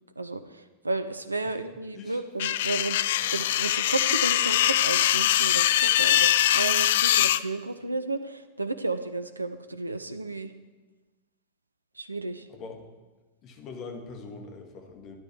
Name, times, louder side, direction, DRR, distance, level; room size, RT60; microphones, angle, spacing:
voice 1, 0.2-3.0 3.3-10.5 12.0-12.5, right 3 dB, 80° right, 10 dB, 0.6 m, -32 dB
sound 1, 2.4-7.4, left 13 dB, 55° left, 0.3 m, -23 dB
voice 2, 12.5-12.8 13.4-15.2, left 4 dB, 35° left, 2 dB, 2.1 m, -42 dB
12.5 x 10.5 x 4.7 m, 1.2 s
figure-of-eight pair, 90°, 0 cm